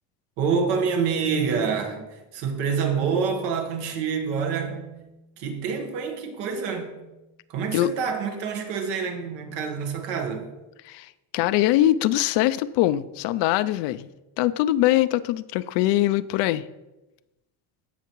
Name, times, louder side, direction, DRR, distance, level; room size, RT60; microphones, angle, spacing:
voice 1, 0.4-5.0 5.4-7.0 7.5-10.5, right 6 dB, 90° right, 1.4 m, -27 dB
voice 2, 10.9-14.1 14.4-16.7, left 14 dB, 85° left, 0.5 m, -22 dB
15.0 x 5.7 x 3.1 m
cardioid pair, 130°, 41 cm